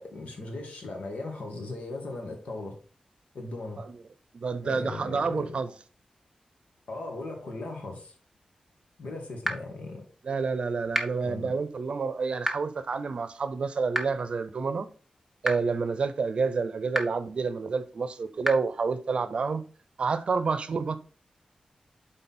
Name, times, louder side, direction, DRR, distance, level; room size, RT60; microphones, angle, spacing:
voice 1, 0.0-2.8 3.3-3.8 4.6-5.6 6.9-8.1 9.0-10.0 11.2-11.5, left 2 dB, 80° left, 2.0 m, -38 dB
voice 2, 4.3-5.7 10.2-14.9 15.4-19.6 20.0-21.0, right 4 dB, 55° right, 0.6 m, -29 dB
sound 1, 9.4-9.5 10.9-11.0 12.4-12.5 13.9-14.0 15.4-15.5 16.9-17.0 18.4-18.5, right 1 dB, ahead, 0.7 m, -26 dB
7.9 x 3.9 x 4.3 m
wide cardioid pair, 155°, 2 cm